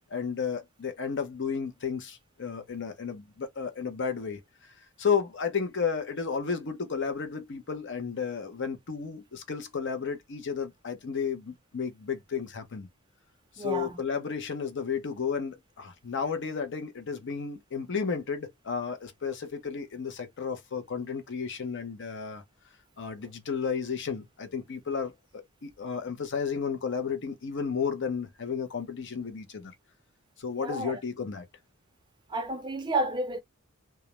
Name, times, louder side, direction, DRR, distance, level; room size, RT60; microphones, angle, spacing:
voice 1, 0.1-4.4 5.0-12.9 13.6-22.4 23.0-29.7 30.4-31.4, left 6 dB, 55° left, 0.6 m, -33 dB
voice 2, 13.6-14.0 30.6-31.0 32.3-33.4, right 2 dB, 20° right, 0.4 m, -31 dB
2.3 x 2.0 x 2.9 m
head